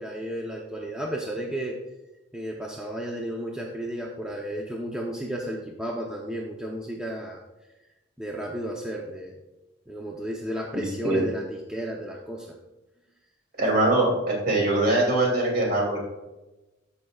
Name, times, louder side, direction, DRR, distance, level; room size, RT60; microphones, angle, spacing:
voice 1, 0.0-1.8 2.3-7.4 7.8-7.9 8.2-9.4 9.9-12.6, right 1 dB, 5° right, -2 dB, 0.7 m, -33 dB
voice 2, 13.6-16.0, right 2 dB, 50° right, -1 dB, 2.7 m, -22 dB
14.0 x 5.5 x 2.4 m, 1.0 s
head